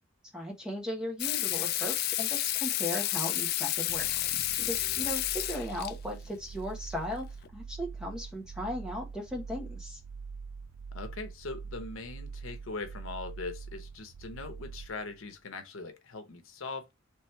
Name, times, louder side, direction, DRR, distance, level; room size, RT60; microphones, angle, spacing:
voice 1, 0.3-4.1 4.7-7.3 7.5-10.0, equal, 5° right, 1.2 m, -37 dB
Water tap faucet / Sink (filling or washing), 1.2-5.9 7.4-7.5, left 14 dB, 50° left, 0.3 m, -31 dB
sound 1, 3.9-15.3, right 5 dB, 90° right, 0.4 m, -44 dB
voice 2, 10.9-16.9, left 3 dB, 80° left, 0.8 m, -41 dB
3.4 x 3.2 x 4.4 m
head